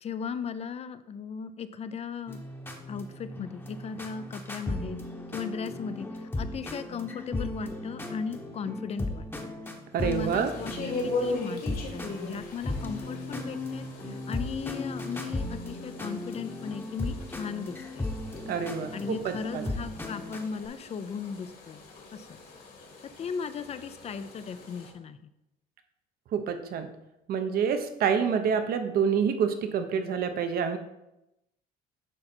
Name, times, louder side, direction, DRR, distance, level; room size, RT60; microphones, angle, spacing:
voice 1, 0.0-2.4 2.9-5.0 5.3-6.1 6.4-9.3 10.0-18.1 18.9-21.8 22.1-22.4 23.2-25.3, left 6 dB, 40° left, 13 dB, 0.5 m, -37 dB
sound 1, 2.3-20.7, left 2 dB, 15° left, 1.0 m, -36 dB
voice 2, 9.9-10.5 18.5-19.7 26.3-26.9 27.3-30.8, right 7 dB, 65° right, 8 dB, 0.9 m, -27 dB
sound 2, 10.0-24.9, left 3 dB, 60° left, 1.9 m, -40 dB
9.8 x 3.8 x 4.4 m, 0.89 s
cardioid pair, 110°, 17 cm